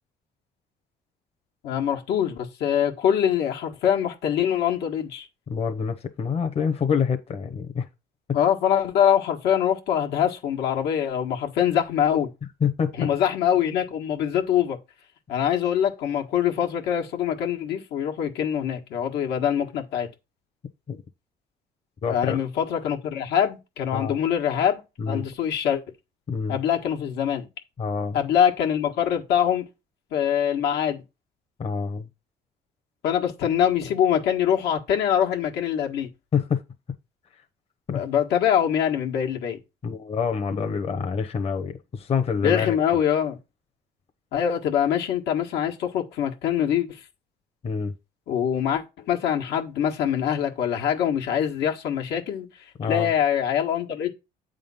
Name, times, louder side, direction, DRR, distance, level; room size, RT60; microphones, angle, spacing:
voice 1, 1.6-5.3 8.3-12.3 13.0-14.8 15.3-20.1 22.1-25.8 26.5-27.5 28.1-29.6 30.1-31.0 33.0-36.1 37.9-39.6 42.4-43.4 44.3-47.0 48.3-52.5 52.9-54.1, left 9 dB, 80° left, 1.5 m, -24 dB
voice 2, 5.5-7.9 12.6-12.9 20.9-21.0 22.0-22.4 23.9-24.2 25.0-25.3 26.3-26.6 27.8-28.2 31.6-32.1 36.3-36.6 37.9-38.0 39.8-42.7 47.6-47.9 52.8-53.1, left 6 dB, 35° left, 0.9 m, -26 dB
8.5 x 3.8 x 5.5 m
cardioid pair, 110°, 17 cm